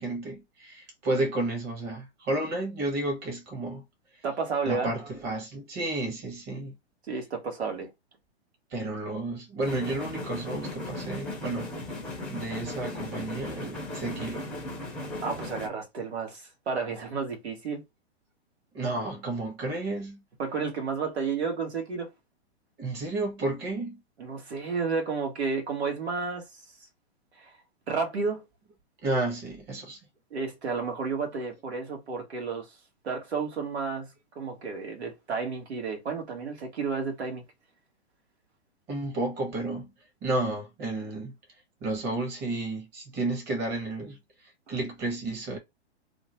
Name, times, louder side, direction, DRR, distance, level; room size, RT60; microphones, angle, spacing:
voice 1, 0.0-3.8 4.6-6.7 8.7-11.7 12.3-14.5 18.7-20.2 22.8-24.0 29.0-30.0 38.9-39.9 40.2-41.3 41.8-45.6, right 2 dB, 30° right, 1.3 m, -32 dB
voice 2, 4.2-4.9 7.1-7.9 15.2-17.8 20.4-22.1 24.2-26.6 27.4-27.5 27.9-28.4 30.3-32.7 33.0-34.1 34.3-37.4, right 5 dB, 75° right, 1.4 m, -31 dB
sound 1, 9.6-15.7, left 1 dB, 5° left, 0.6 m, -37 dB
2.9 x 2.2 x 2.9 m
hypercardioid pair, 120°, 33 cm